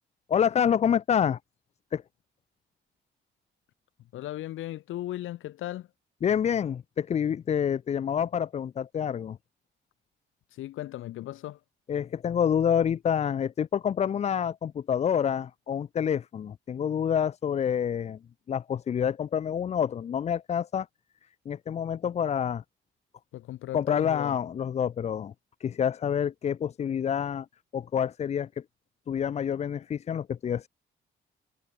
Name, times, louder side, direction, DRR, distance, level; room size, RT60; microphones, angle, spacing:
voice 1, 0.3-1.4 1.9-2.0 6.2-9.4 11.9-18.2 18.5-20.9 21.5-22.6 23.7-25.3 25.6-27.5 27.7-28.6 29.1-30.7, left 8 dB, 35° left, 0.4 m, -27 dB
voice 2, 4.1-5.9 10.5-11.6 23.3-24.4, left 14 dB, 85° left, 5.9 m, -37 dB
cardioid pair, 90°, 20 cm